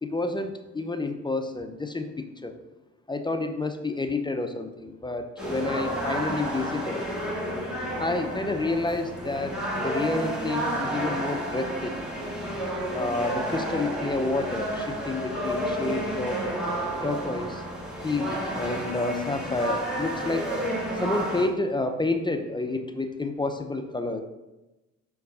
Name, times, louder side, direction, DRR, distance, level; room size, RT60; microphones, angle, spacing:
voice 1, 0.0-2.5 3.1-7.0 8.0-9.5 9.8-12.1 12.9-16.4 17.0-17.6 18.0-20.5 21.0-24.2, left 2 dB, 15° left, 6 dB, 0.6 m, -29 dB
sound 1, 5.4-21.5, right 1 dB, ahead, 2.1 m, -31 dB
6.4 x 4.6 x 4.8 m, 1.0 s
cardioid pair, 90°, 30 cm